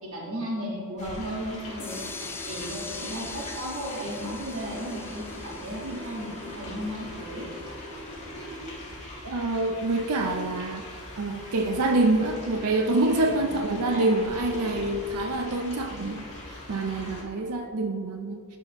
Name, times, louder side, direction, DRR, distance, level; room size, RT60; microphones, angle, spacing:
voice 1, 0.0-2.1 2.5-7.5 13.4-14.1, equal, 65° right, -3 dB, 1.6 m, -35 dB
sound 1, 1.0-17.2, left 1 dB, 30° left, 1.8 m, -41 dB
sound 2, 1.8-7.6, left 4 dB, 10° left, 0.4 m, -42 dB
voice 2, 9.2-10.9 11.2-18.6, right 2 dB, 80° right, 5 dB, 0.5 m, -26 dB
11.0 x 5.7 x 3.0 m, 2.4 s
head